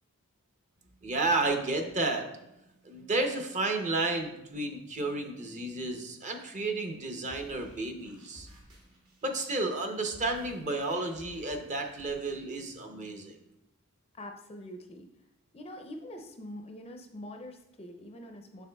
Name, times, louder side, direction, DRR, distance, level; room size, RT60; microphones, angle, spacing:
voice 1, 1.0-2.3 2.8-8.5 9.2-13.4, right 2 dB, 35° right, 4 dB, 0.6 m, -32 dB
sound 1, 7.2-12.4, equal, 90° right, 2.3 m, -55 dB
voice 2, 14.1-15.1 15.5-18.7, left 1 dB, 25° left, 4 dB, 0.4 m, -44 dB
6.9 x 6.0 x 2.2 m, 0.87 s
head